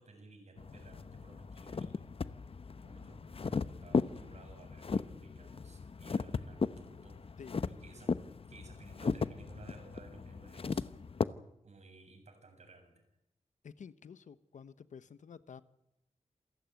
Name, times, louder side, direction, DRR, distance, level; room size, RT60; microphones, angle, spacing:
voice 1, 0.0-2.1 2.8-7.3 7.8-8.2 8.5-10.9 11.6-13.0, right 3 dB, 65° right, 7.3 m, -57 dB
sound 1, 0.6-11.3, left 5 dB, 50° left, 0.9 m, -37 dB
voice 2, 13.6-15.6, left 6 dB, 90° left, 1.1 m, -51 dB
27.5 x 15.5 x 9.2 m
wide cardioid pair, 90°, 12 cm